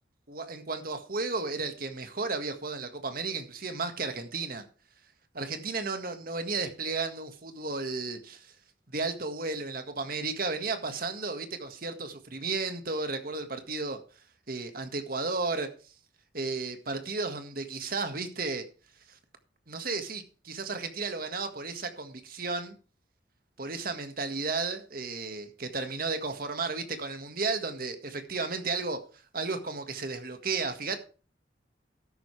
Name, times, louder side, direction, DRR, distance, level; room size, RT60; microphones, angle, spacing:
voice 1, 0.3-4.6 5.3-8.5 8.9-14.0 14.5-15.7 16.3-18.6 19.1-19.2 19.7-22.8 23.6-29.0 29.3-31.0, right 3 dB, 55° right, 1.8 m, -33 dB
13.0 x 10.5 x 3.3 m
head